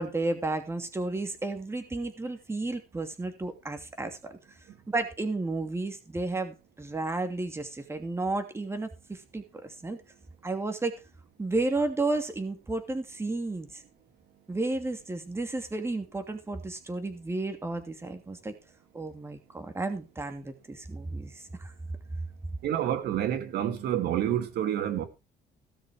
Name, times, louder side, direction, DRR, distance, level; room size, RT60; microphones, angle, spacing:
voice 1, 0.0-4.4 4.9-10.0 10.4-11.0 11.4-13.8 14.5-18.5 18.9-21.7, right 2 dB, 15° right, 2.6 m, -32 dB
voice 2, 22.6-25.0, right 11 dB, 70° right, 2.4 m, -28 dB
17.0 x 6.9 x 4.9 m
cardioid pair, 110°, 17 cm